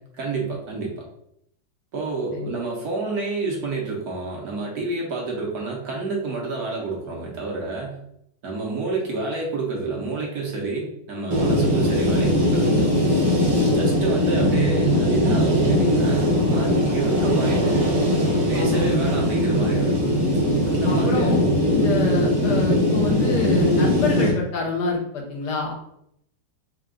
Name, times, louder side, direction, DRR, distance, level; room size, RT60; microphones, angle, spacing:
voice 1, 0.2-1.0 1.9-8.0 8.4-12.9 13.7-18.0 18.5-20.0 20.7-21.4, right 3 dB, 60° right, -2 dB, 1.3 m, -29 dB
sound 1, 11.3-24.3, equal, 40° right, 0.4 m, -20 dB
voice 2, 18.5-18.9 20.9-21.4 21.7-25.7, left 3 dB, 70° left, 0 dB, 1.4 m, -26 dB
4.4 x 2.3 x 3.7 m, 0.75 s
omnidirectional pair, 1.9 m